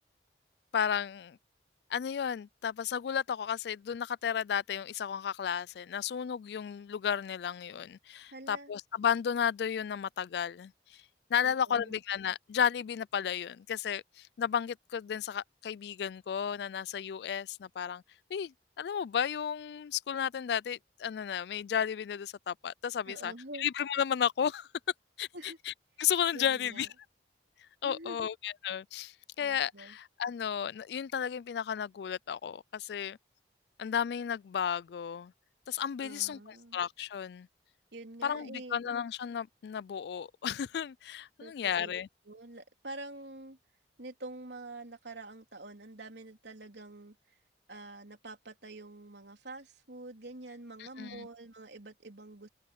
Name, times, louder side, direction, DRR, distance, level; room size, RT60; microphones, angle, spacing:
voice 1, 0.7-1.4 1.9-11.0 11.3-18.0 18.3-23.3 23.6-24.7 25.2-25.3 26.0-26.9 27.8-33.2 33.8-35.3 35.7-37.5 38.2-42.1 50.8-51.3, left 8 dB, 65° left, 0.3 m, -33 dB
voice 2, 8.3-8.7 11.4-12.0 23.1-23.7 25.3-25.6 26.3-26.9 27.8-28.3 29.4-30.0 36.0-36.8 37.9-38.9 41.4-42.0 42.3-43.6 44.0-47.4 47.7-52.5, right 2 dB, 75° right, 3.7 m, -46 dB
head